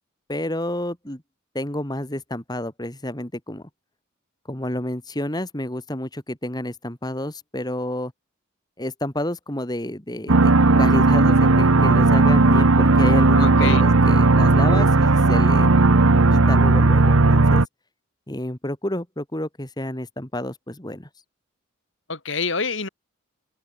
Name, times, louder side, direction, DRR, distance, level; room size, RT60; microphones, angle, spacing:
voice 1, 0.3-1.2 1.5-3.6 4.5-8.1 8.8-10.5 10.8-15.8 16.3-17.6 18.3-21.1, left 1 dB, 20° left, 2.7 m, -30 dB
sound 1, 10.3-17.6, right 3 dB, 90° right, 1.1 m, -15 dB
voice 2, 13.3-13.8 22.1-22.9, left 4 dB, 60° left, 3.1 m, -27 dB
head